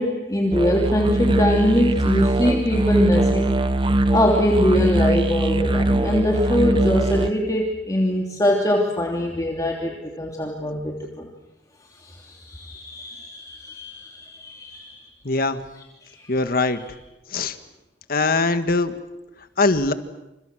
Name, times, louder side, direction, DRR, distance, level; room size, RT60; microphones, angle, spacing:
voice 1, 0.0-3.6 4.1-11.3 12.0-15.0 16.1-16.2, left 1 dB, 20° left, -1 dB, 3.0 m, -23 dB
sound 1, 0.5-7.3, right 1 dB, 30° right, 1.2 m, -21 dB
voice 2, 15.2-15.6 16.3-16.8 17.3-17.6 18.1-18.9 19.6-19.9, left 3 dB, 55° left, 9 dB, 1.8 m, -21 dB
29.0 x 28.5 x 6.3 m, 0.97 s
head